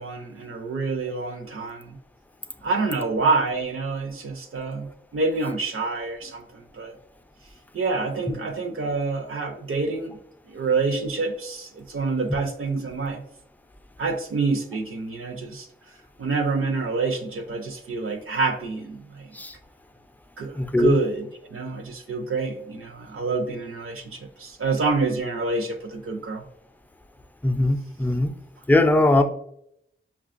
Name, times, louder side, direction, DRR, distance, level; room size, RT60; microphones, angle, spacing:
voice 1, 0.0-2.0 2.6-6.9 7.7-10.2 10.5-13.2 14.0-15.7 16.2-19.3 20.4-26.4 29.2-29.3, right 3 dB, 85° right, 0.6 m, -27 dB
voice 2, 20.5-21.0 27.4-28.3 28.7-29.2, left 1 dB, 10° left, 0.4 m, -20 dB
5.5 x 2.3 x 2.5 m
wide cardioid pair, 65°, 21 cm